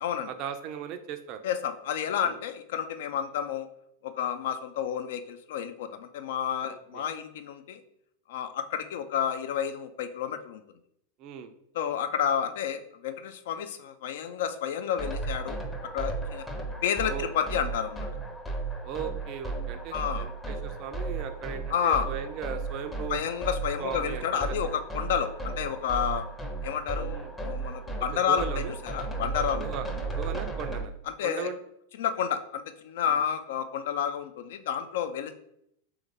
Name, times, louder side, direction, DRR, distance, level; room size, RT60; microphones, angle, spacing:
voice 1, 0.3-1.4 2.3-2.4 6.7-7.0 11.2-11.5 17.1-17.3 18.8-23.2 23.8-24.7 27.1-27.3 28.3-28.7 29.6-30.9 31.2-31.6 33.1-33.2, right 8 dB, 40° right, 8 dB, 0.4 m, -38 dB
voice 2, 1.4-3.7 4.0-7.8 8.3-10.6 11.7-15.6 15.9-16.4 16.8-18.1 19.9-20.3 21.7-22.1 23.1-26.2 26.6-29.6 31.2-31.5 32.0-35.3, left 8 dB, 55° left, 9 dB, 0.4 m, -30 dB
sound 1, 15.0-30.8, right 3 dB, 10° left, 0.6 m, -35 dB
3.5 x 3.3 x 3.4 m, 0.75 s
figure-of-eight pair, 90°, 0 cm